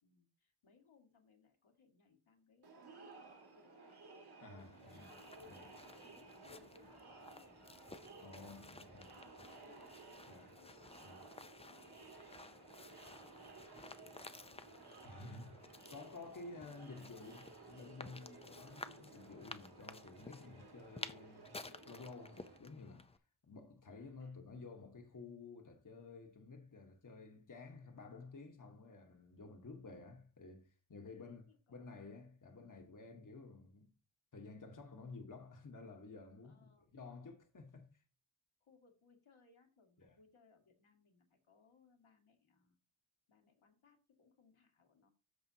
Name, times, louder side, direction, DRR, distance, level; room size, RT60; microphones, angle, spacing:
voice 1, 0.0-4.0 4.8-7.9 8.5-9.9 10.5-11.0 11.6-12.3 12.6-13.5 14.0-14.7 15.8-16.0 16.5-17.1 24.2-24.4 31.1-32.0 36.4-37.0 38.6-42.8 43.3-45.1, left 5 dB, 70° left, 1.9 m, -69 dB
Crowd, 2.6-22.6, right 3 dB, 50° right, 1.7 m, -57 dB
voice 2, 4.4-5.2 5.5-5.7 8.2-9.1 10.3-10.6 11.0-11.3 15.0-23.2 23.4-31.4 31.7-33.9 34.3-36.6 36.9-38.0 40.0-40.2, left 3 dB, 40° left, 1.2 m, -53 dB
sound 1, 4.6-23.2, left 3 dB, 15° left, 0.4 m, -55 dB
13.5 x 5.1 x 2.7 m
wide cardioid pair, 85°, 50 cm